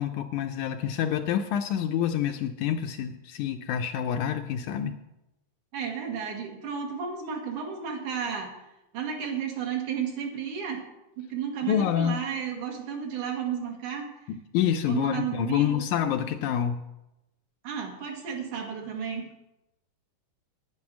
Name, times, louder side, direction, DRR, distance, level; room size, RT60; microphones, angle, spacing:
voice 1, 0.0-5.0 11.7-12.2 14.3-16.8, left 9 dB, 80° left, 7 dB, 1.8 m, -27 dB
voice 2, 5.7-8.5 8.9-10.8 11.2-14.1 14.9-15.8 17.6-19.3, right 7 dB, 70° right, 2 dB, 3.0 m, -33 dB
9.7 x 9.5 x 6.1 m, 0.91 s
omnidirectional pair, 3.8 m